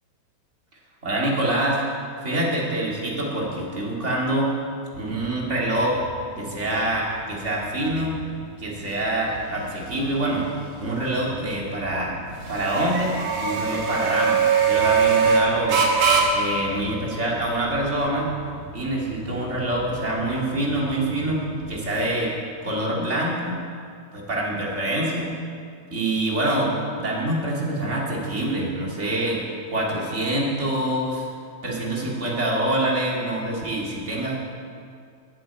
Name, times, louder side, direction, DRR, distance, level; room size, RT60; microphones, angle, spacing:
voice 1, 1.0-1.8 2.2-4.5 5.0-6.0 6.4-8.2 8.6-10.5 10.8-12.2 12.5-15.8 16.3-18.3 18.7-22.3 22.6-23.6 24.1-25.3 25.9-26.7 27.0-29.4 29.7-31.3 31.6-34.3, right 1 dB, 25° right, -3 dB, 2.0 m, -25 dB
sound 1, 4.9-22.1, right 5 dB, 60° right, 2.4 m, -26 dB
12.5 x 7.7 x 8.6 m, 2.3 s
omnidirectional pair, 3.7 m